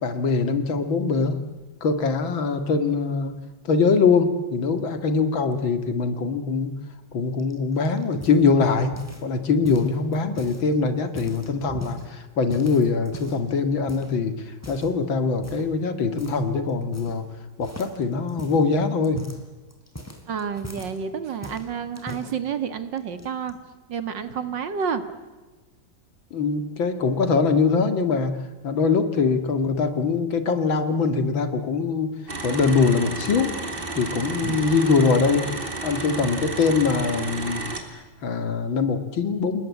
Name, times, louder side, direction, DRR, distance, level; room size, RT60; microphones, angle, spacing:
voice 1, 0.0-1.4 1.8-3.4 3.6-6.7 7.1-17.3 17.6-19.3 26.3-28.4 28.6-32.1 32.4-33.5 33.9-37.6 38.2-39.6, left 4 dB, 80° left, 9 dB, 2.7 m, -23 dB
sound 1, 7.4-9.3 9.6-10.6 11.0-12.1 12.5-13.5 13.9-14.1 14.6-15.0 15.4-15.7 16.2-16.4 16.7-17.3 17.6-21.0 21.4-22.3 23.0-23.5, left 1 dB, 5° left, 3.4 m, -40 dB
voice 2, 20.3-23.6 23.9-25.0 34.4-34.6, right 7 dB, 65° right, 11 dB, 2.3 m, -29 dB
sound 2, 32.3-37.8, right 2 dB, 25° right, 3.0 m, -32 dB
29.0 x 19.5 x 8.5 m, 1.2 s
omnidirectional pair, 2.1 m